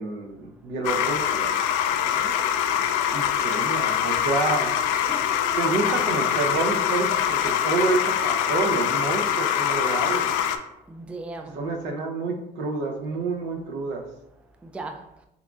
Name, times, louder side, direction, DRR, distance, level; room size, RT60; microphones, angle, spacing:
voice 1, 0.0-1.5 2.4-4.8 5.5-10.3 11.5-14.0, right 3 dB, 70° right, 0.8 m, -28 dB
sound 1, 0.8-10.6, left 9 dB, 80° left, 0.4 m, -24 dB
voice 2, 1.9-2.3 4.9-5.4 10.9-11.6 14.6-15.0, right 2 dB, 5° right, 0.3 m, -38 dB
5.7 x 2.6 x 2.4 m
supercardioid pair, 90°, 19 cm